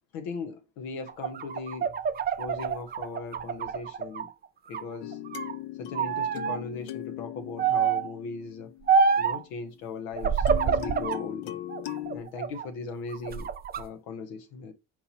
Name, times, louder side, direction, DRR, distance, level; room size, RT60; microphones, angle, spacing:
voice 1, 0.1-1.9 2.4-4.3 4.7-5.2 5.8-8.7 9.2-11.6 12.1-13.5 13.8-14.7, left 4 dB, 85° left, 1.1 m, -38 dB
sound 1, 1.1-4.3 4.7-5.6 6.0-6.6 7.6-8.1 8.9-9.4 10.2-11.2 11.7-12.7 13.1-13.8, right 6 dB, 25° right, 0.3 m, -27 dB
sound 2, 5.0-9.3 10.5-12.2, left 14 dB, 60° left, 0.6 m, -39 dB
4.6 x 2.8 x 4.0 m
supercardioid pair, 90°, 46 cm